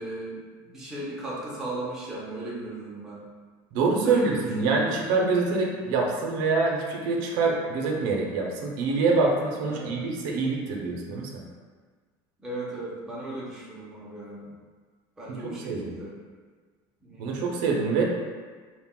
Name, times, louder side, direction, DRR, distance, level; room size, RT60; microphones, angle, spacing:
voice 1, 0.0-3.2 4.0-4.9 9.6-10.0 12.4-14.5 15.2-16.1 17.0-17.3, right 2 dB, 5° right, -7 dB, 0.4 m, -36 dB
voice 2, 3.7-11.4 15.3-15.9 17.2-18.0, right 4 dB, 70° right, -1 dB, 0.5 m, -25 dB
2.4 x 2.1 x 3.5 m, 1.5 s
cardioid pair, 170°, 11 cm